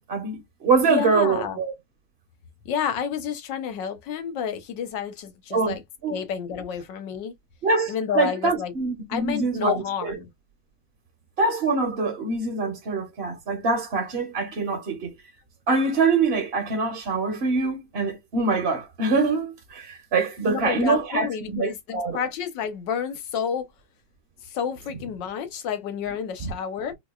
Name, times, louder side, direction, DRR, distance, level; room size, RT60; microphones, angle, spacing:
voice 1, 0.0-1.7 5.5-5.7 6.0-6.2 7.6-10.1 11.4-15.1 15.7-22.2 26.4-26.5, right 4 dB, 45° right, 0.9 m, -24 dB
voice 2, 0.8-1.6 2.6-5.8 6.1-7.3 7.9-8.7 9.1-10.3 20.4-23.7 24.4-26.9, left 7 dB, 85° left, 1.5 m, -30 dB
4.4 x 2.3 x 2.3 m
omnidirectional pair, 1.9 m